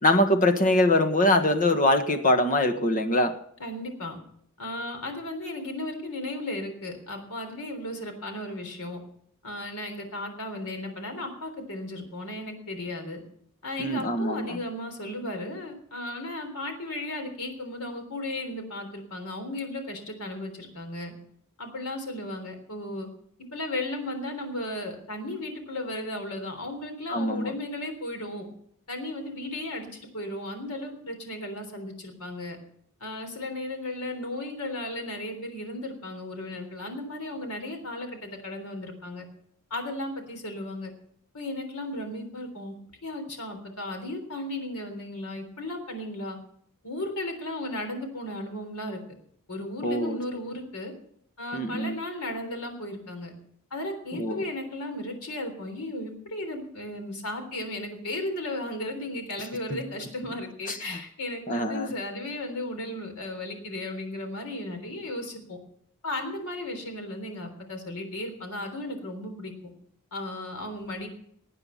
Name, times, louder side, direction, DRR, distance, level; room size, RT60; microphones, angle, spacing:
voice 1, 0.0-3.3 13.8-14.6 27.1-27.5 49.8-50.2 51.5-52.0 54.1-54.4 59.7-59.8 60.7-61.0 61.5-61.9, left 1 dB, 40° left, 7 dB, 1.5 m, -23 dB
voice 2, 3.6-4.2 4.6-9.0 9.4-13.2 13.6-21.1 21.6-23.1 23.5-28.5 28.9-32.6 33.0-39.2 39.7-40.9 41.3-42.7 43.0-46.4 46.8-49.0 49.5-50.9 51.4-53.3 53.7-65.6 66.0-69.5 70.1-71.1, left 1 dB, 75° left, 6 dB, 3.7 m, -35 dB
18.5 x 9.2 x 5.8 m, 0.66 s
head